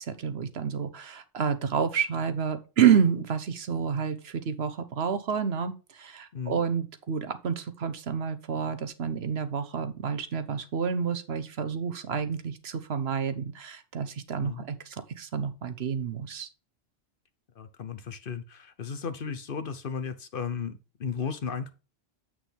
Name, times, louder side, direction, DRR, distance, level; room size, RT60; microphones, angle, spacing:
voice 1, 0.0-16.5, right 7 dB, 60° right, 1.1 m, -29 dB
voice 2, 6.3-6.6 14.4-14.7 17.5-21.7, left 6 dB, 55° left, 0.9 m, -35 dB
8.2 x 6.3 x 3.4 m
omnidirectional pair, 1.2 m